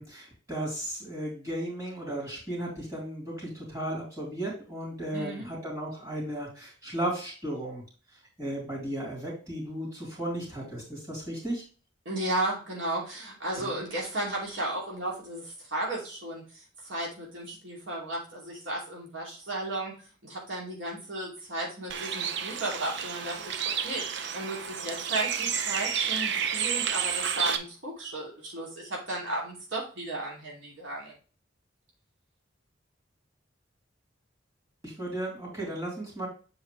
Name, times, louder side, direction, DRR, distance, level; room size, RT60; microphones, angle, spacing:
voice 1, 0.0-7.8 8.4-11.6 13.6-13.8 34.8-36.3, right 1 dB, 15° right, -6 dB, 3.8 m, -35 dB
voice 2, 5.1-5.4 12.0-19.9 20.2-31.1, right 1 dB, 80° right, -3 dB, 2.8 m, -34 dB
Bird, 21.9-27.6, right 7 dB, 60° right, 0.7 m, -30 dB
7.7 x 4.9 x 3.2 m, 0.36 s
head